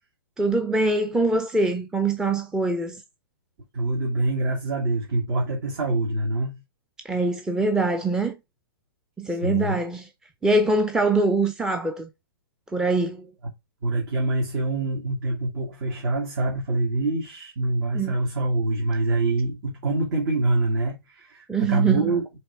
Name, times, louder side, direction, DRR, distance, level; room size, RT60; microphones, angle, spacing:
voice 1, 0.4-3.0 7.0-8.4 9.2-10.1 10.4-12.1 12.7-13.3 17.9-18.1 21.5-22.1, right 3 dB, 5° right, 0.7 m, -23 dB
voice 2, 3.7-6.6 9.3-9.8 13.8-22.4, right 2 dB, 55° right, 2.7 m, -25 dB
8.8 x 3.6 x 3.4 m
hypercardioid pair, 125°, 13 cm